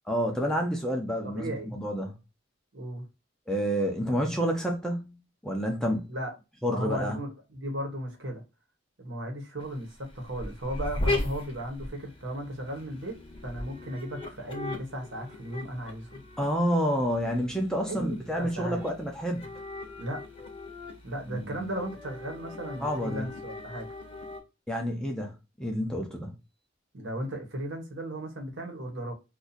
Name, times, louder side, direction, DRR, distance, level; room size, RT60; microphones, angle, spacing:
voice 1, 0.1-2.1 3.5-5.2 5.4-6.1 6.6-7.2 16.4-19.5 21.3-21.7 22.8-23.3 24.7-25.3 25.6-26.3, equal, 5° left, 0.6 m, -29 dB
voice 2, 1.2-1.8 2.7-3.1 6.1-6.3 6.6-8.4 9.0-13.2 13.4-16.2 17.9-18.8 20.0-20.2 21.0-23.9 26.9-29.1, equal, 70° right, 1.1 m, -35 dB
sound 1, 9.6-24.4, left 2 dB, 30° left, 0.8 m, -38 dB
2.7 x 2.5 x 4.0 m
head